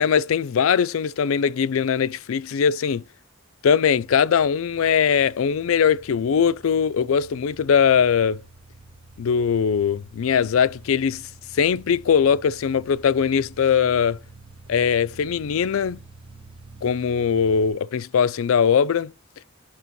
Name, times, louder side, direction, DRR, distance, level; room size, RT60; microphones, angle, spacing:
voice 1, 0.0-3.0 3.6-8.4 9.2-11.3 11.5-14.2 14.7-16.0 16.8-19.1, left 7 dB, 75° left, 0.4 m, -21 dB
sound 1, 3.9-17.7, right 3 dB, 25° right, 1.0 m, -48 dB
6.0 x 3.0 x 5.3 m
head